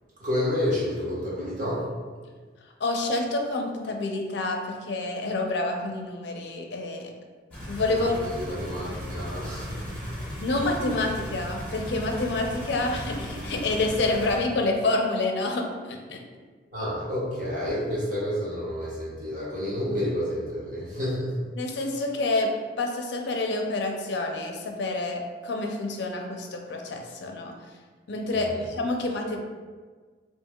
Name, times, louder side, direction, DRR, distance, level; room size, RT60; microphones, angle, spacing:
voice 1, 0.2-2.0 7.9-10.3 16.7-21.5 28.3-28.7, left 1 dB, 45° right, -8 dB, 1.2 m, -30 dB
voice 2, 2.8-7.1 7.6-8.2 10.4-16.2 21.6-22.5 22.8-27.5 28.1-29.4, left 2 dB, 70° left, 2 dB, 0.5 m, -28 dB
sound 1, 7.5-14.4, equal, 10° left, 1.3 m, -36 dB
4.5 x 2.9 x 2.2 m, 1.5 s
head